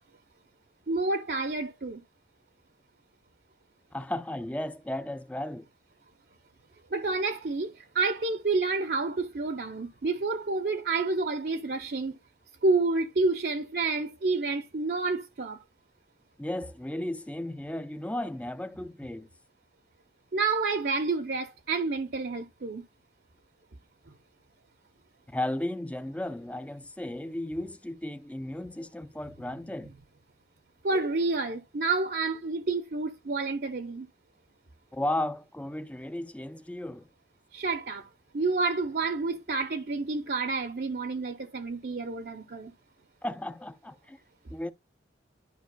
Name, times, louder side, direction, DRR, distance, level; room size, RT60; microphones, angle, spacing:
voice 1, 0.9-2.0 6.9-12.2 12.6-15.6 20.3-22.8 30.8-34.1 37.5-38.1 38.3-42.7, right 3 dB, 60° right, 0.7 m, -29 dB
voice 2, 3.9-5.7 16.4-19.3 25.3-29.9 34.9-37.1 43.2-44.2 44.5-44.7, left 1 dB, 10° left, 0.4 m, -34 dB
11.5 x 5.7 x 2.3 m
head